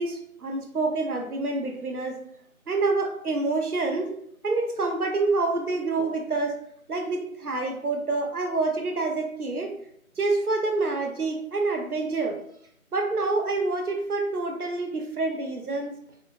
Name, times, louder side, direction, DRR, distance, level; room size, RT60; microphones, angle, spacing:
voice 1, 0.0-2.2 2.7-4.1 4.4-6.6 6.9-9.7 10.2-12.4 12.9-15.9, right 3 dB, 85° right, 3 dB, 0.8 m, -27 dB
3.0 x 3.0 x 2.4 m, 0.69 s
figure-of-eight pair, 165°, 43 cm